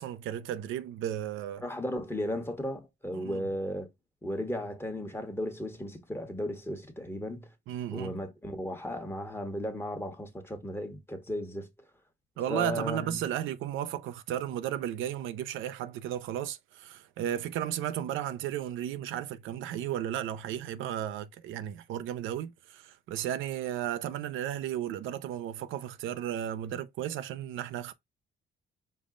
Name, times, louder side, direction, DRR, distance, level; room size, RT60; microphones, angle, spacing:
voice 1, 0.0-1.6 3.1-3.5 7.7-8.2 12.4-27.9, right 11 dB, 85° right, 0.5 m, -34 dB
voice 2, 1.6-3.9 4.2-7.5 7.9-11.7 12.5-13.2, equal, 10° left, 1.2 m, -35 dB
5.4 x 2.1 x 3.7 m
cardioid pair, 90°, 20 cm